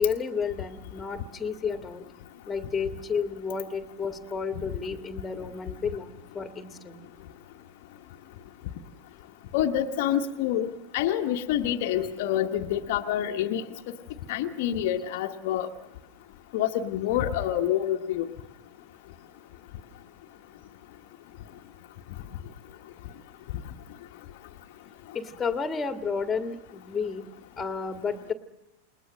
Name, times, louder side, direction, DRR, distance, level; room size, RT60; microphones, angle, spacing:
voice 1, 0.0-2.0 2.5-7.0 25.1-27.2 27.6-28.3, left 5 dB, 15° left, 7 dB, 2.0 m, -31 dB
voice 2, 9.5-13.6 14.3-15.7 16.5-18.3, left 11 dB, 50° left, 3 dB, 1.3 m, -27 dB
28.5 x 21.0 x 6.4 m, 0.83 s
figure-of-eight pair, 90°, 0 cm